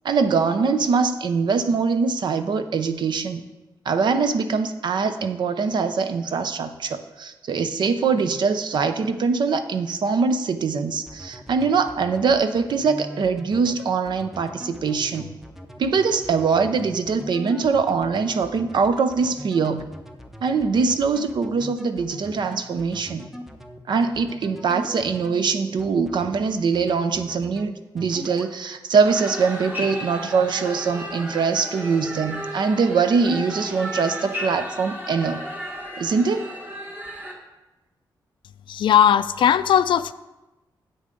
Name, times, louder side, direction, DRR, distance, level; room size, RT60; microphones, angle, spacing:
voice 1, 0.0-3.4 3.9-15.3 15.8-19.8 20.4-23.3 23.9-35.4 36.0-36.5, right 5 dB, 65° right, 9 dB, 0.7 m, -23 dB
sound 1, 11.1-25.4 25.8-26.4 26.7-27.7 28.0-28.5, equal, 5° right, 0.7 m, -40 dB
sound 2, 29.0-37.3, equal, 25° right, 1.6 m, -34 dB
voice 2, 38.7-40.1, left 9 dB, 80° left, 15 dB, 0.4 m, -18 dB
9.9 x 7.8 x 3.9 m, 1.1 s
wide cardioid pair, 130°, 8 cm